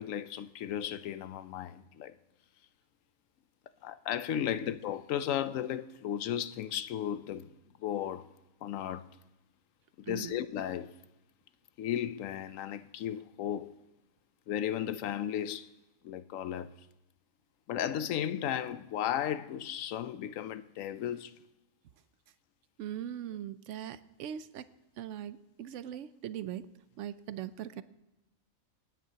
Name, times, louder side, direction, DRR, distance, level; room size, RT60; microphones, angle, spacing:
voice 1, 0.0-2.1 3.8-7.5 7.8-8.3 8.6-9.1 10.0-11.0 11.8-13.8 14.5-15.7 16.0-16.8 17.7-21.3, left 10 dB, 75° left, 0.9 m, -35 dB
voice 2, 10.1-10.4 22.8-24.6 25.0-26.7 27.0-27.8, right 10 dB, 65° right, 0.9 m, -40 dB
26.5 x 9.5 x 2.8 m
omnidirectional pair, 1.4 m